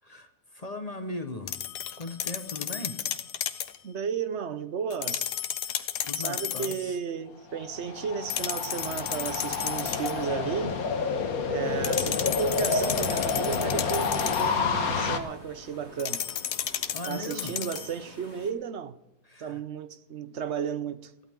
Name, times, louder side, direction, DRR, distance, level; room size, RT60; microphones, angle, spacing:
voice 1, 0.0-1.6 2.0-3.0 5.6-7.0 16.7-17.5 19.2-19.6 20.2-20.3, left 2 dB, 25° left, 1.2 m, -39 dB
sound 1, 1.5-3.8 4.9-6.9 8.3-10.3 11.8-14.6 16.0-18.0, left 10 dB, 90° left, 1.5 m, -33 dB
voice 2, 3.8-5.3 6.1-10.8 11.5-16.2 17.1-19.0 19.4-21.1, right 6 dB, 55° right, 0.8 m, -33 dB
sound 2, 7.5-15.2, left 5 dB, 65° left, 1.7 m, -29 dB
sound 3, 11.6-18.5, left 2 dB, 40° left, 2.8 m, -50 dB
20.5 x 15.0 x 3.7 m
omnidirectional pair, 1.7 m